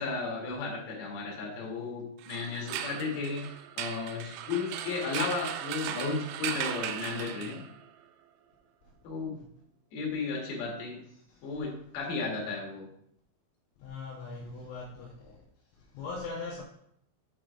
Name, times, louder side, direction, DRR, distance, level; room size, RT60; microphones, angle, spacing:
voice 1, 0.0-3.5 3.8-7.6 9.0-9.4 9.9-11.0 11.4-12.9, left 4 dB, 60° left, 3.0 m, -34 dB
sound 1, 2.2-7.9, right 10 dB, 90° right, 3.3 m, -37 dB
voice 2, 13.8-15.4 15.9-16.6, left 3 dB, 80° left, 2.8 m, -40 dB
7.6 x 3.8 x 4.7 m
omnidirectional pair, 6.0 m